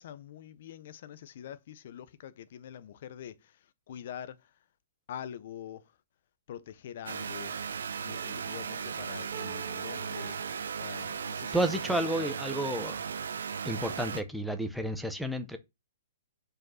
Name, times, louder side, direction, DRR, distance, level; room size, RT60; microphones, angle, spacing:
voice 1, 0.0-4.6 5.1-6.0 6.5-7.7 8.0-11.8 12.2-12.3, left 10 dB, 40° left, 0.7 m, -45 dB
sound 1, 7.1-14.2, right 6 dB, 90° right, 0.9 m, -36 dB
sound 2, 8.1-13.2, right 8 dB, 45° right, 2.0 m, -50 dB
voice 2, 11.5-13.0 13.6-15.6, right 1 dB, ahead, 0.6 m, -31 dB
5.2 x 4.9 x 6.1 m
hypercardioid pair, 180°, 0 cm